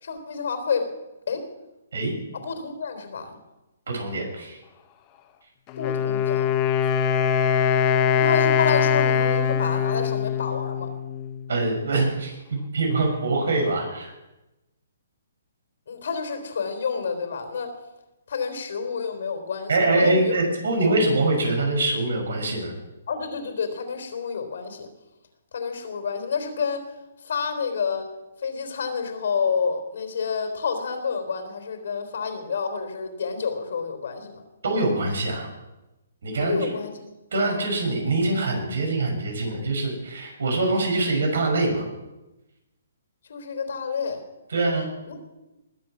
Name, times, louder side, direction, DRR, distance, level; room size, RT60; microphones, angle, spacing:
voice 1, 0.0-0.9 1.3-1.5 2.3-3.4 5.8-6.5 8.1-10.9 15.9-17.8 18.3-20.4 23.1-24.9 25.5-28.1 28.4-34.4 36.4-36.9 43.3-44.2 45.1-45.2, left 5 dB, 65° left, 6 dB, 3.5 m, -29 dB
voice 2, 3.9-4.6 11.5-14.1 19.7-22.7 34.6-35.5 36.2-36.6 37.3-41.8 44.5-44.9, right 2 dB, 75° right, 2 dB, 6.2 m, -24 dB
Wind instrument woodwind instrument, 5.7-11.5, left 7 dB, 25° left, 1.0 m, -22 dB
20.5 x 7.9 x 6.2 m, 1.0 s
hypercardioid pair, 155°, 0 cm